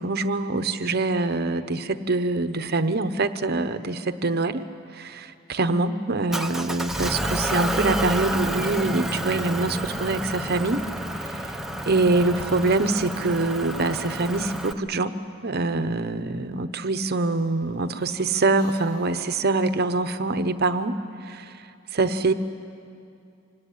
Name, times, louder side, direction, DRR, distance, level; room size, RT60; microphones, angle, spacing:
voice 1, 0.0-4.6 4.9-10.8 11.2-11.4 11.9-15.2 15.4-20.9 21.2-21.5 21.9-22.3, right 3 dB, 50° right, 10 dB, 0.9 m, -24 dB
Motor vehicle (road) / Engine, 6.3-14.7, right 1 dB, ahead, 0.8 m, -30 dB
sound 1, 11.8-13.0 13.4-15.5 17.3-20.3, left 1 dB, 50° left, 4.0 m, -48 dB
25.5 x 18.0 x 10.0 m, 2.5 s
head